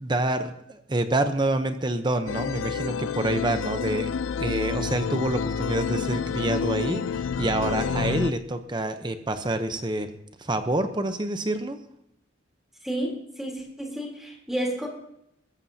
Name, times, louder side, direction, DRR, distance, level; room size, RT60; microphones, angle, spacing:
voice 1, 0.0-4.1 4.4-10.1 10.4-11.8, right 1 dB, 25° right, 8 dB, 0.7 m, -27 dB
sound 1, 2.3-8.3, left 6 dB, 90° left, 0.4 m, -29 dB
voice 2, 12.8-14.9, right 1 dB, ahead, -2 dB, 3.3 m, -31 dB
21.0 x 14.5 x 2.8 m, 0.77 s
head